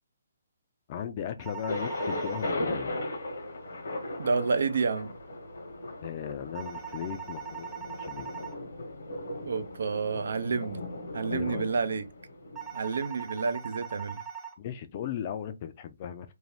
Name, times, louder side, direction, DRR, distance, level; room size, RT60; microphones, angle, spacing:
voice 1, 0.9-2.9 6.0-8.3 11.3-11.7 14.6-16.3, left 9 dB, 35° left, 0.4 m, -37 dB
sound 1, 1.4-2.5 6.5-8.5 12.6-14.5, right 7 dB, 15° right, 0.5 m, -41 dB
Thunder, 1.7-13.5, left 1 dB, 70° left, 1.1 m, -37 dB
voice 2, 4.2-5.1 9.5-10.8 11.1-12.1 12.7-14.2, right 5 dB, 70° right, 0.4 m, -29 dB
2.6 x 2.2 x 3.3 m
hypercardioid pair, 145°, 0 cm